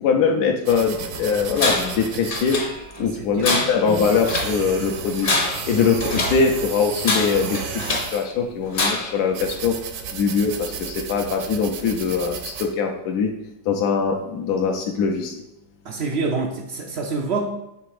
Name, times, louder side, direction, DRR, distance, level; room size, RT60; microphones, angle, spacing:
voice 1, 0.0-2.6 3.0-5.3 5.6-7.6 8.1-9.8 10.1-13.3 13.7-15.3, left 5 dB, 70° left, 2 dB, 1.0 m, -22 dB
sound 1, 0.6-12.7, right 7 dB, 65° right, 1.0 m, -34 dB
Tools, 1.6-2.0 2.3-3.0 3.4-4.6 5.1-6.5 7.0-8.2 8.7-9.2, left 2 dB, 40° left, 0.8 m, -25 dB
voice 2, 3.2-3.6 15.8-17.5, right 4 dB, 90° right, 1 dB, 0.5 m, -26 dB
6.1 x 3.3 x 4.8 m, 0.91 s
omnidirectional pair, 2.0 m